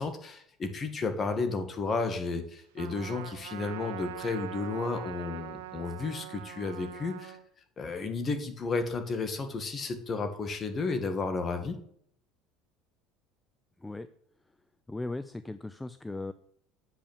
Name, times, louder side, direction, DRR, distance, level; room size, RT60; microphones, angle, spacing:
voice 1, 0.0-7.4 7.8-11.8, left 4 dB, 30° left, 7 dB, 1.6 m, -32 dB
Trumpet, 2.8-7.4, right 11 dB, 90° right, 0.8 m, -43 dB
voice 2, 14.9-16.3, left 2 dB, 10° left, 12 dB, 0.4 m, -37 dB
8.4 x 5.6 x 7.2 m, 0.65 s
supercardioid pair, 115°, 0 cm